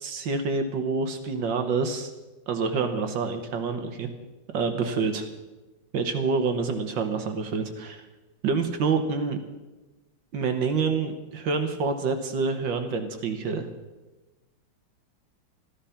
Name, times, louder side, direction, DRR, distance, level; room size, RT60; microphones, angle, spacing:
voice 1, 0.0-2.1 2.5-4.1 4.5-5.3 5.9-8.0 8.4-9.4 10.3-13.7, right 4 dB, 75° right, 7 dB, 1.8 m, -27 dB
14.0 x 13.5 x 5.7 m, 1.1 s
omnidirectional pair, 2.1 m